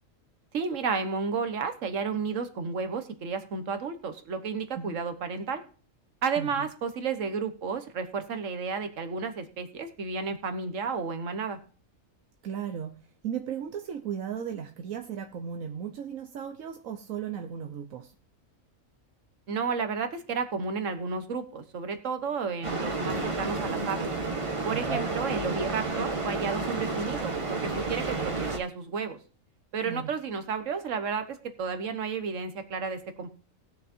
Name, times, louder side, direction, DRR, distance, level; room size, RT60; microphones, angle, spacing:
voice 1, 0.5-5.6 6.2-11.6 19.5-24.1 24.6-29.2 29.7-33.3, right 5 dB, 70° right, 8 dB, 1.5 m, -32 dB
voice 2, 6.4-6.7 12.4-13.0 13.2-18.1 24.7-25.0 29.8-30.1, right 8 dB, 85° right, 5 dB, 1.3 m, -36 dB
sound 1, 22.6-28.6, right 3 dB, 25° right, 1.0 m, -31 dB
19.5 x 6.6 x 2.6 m, 0.38 s
omnidirectional pair, 1.4 m